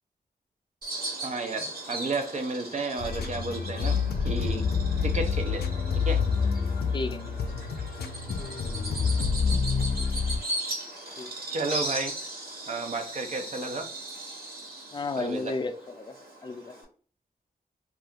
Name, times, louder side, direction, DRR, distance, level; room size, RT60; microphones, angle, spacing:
Bird vocalization bird call bird song, 0.8-16.8, right 2 dB, 75° right, 1.3 m, -38 dB
voice 1, 1.2-4.7 5.0-6.2 11.5-12.2 12.7-13.9 15.2-15.5, right 3 dB, 45° right, 0.5 m, -32 dB
sound 1, 3.0-10.4, left 5 dB, 85° left, 0.4 m, -28 dB
voice 2, 6.9-7.4 11.2-11.3 14.9-16.2 16.4-16.7, left 3 dB, 30° left, 0.4 m, -33 dB
2.7 x 2.4 x 3.4 m
wide cardioid pair, 90°, 16 cm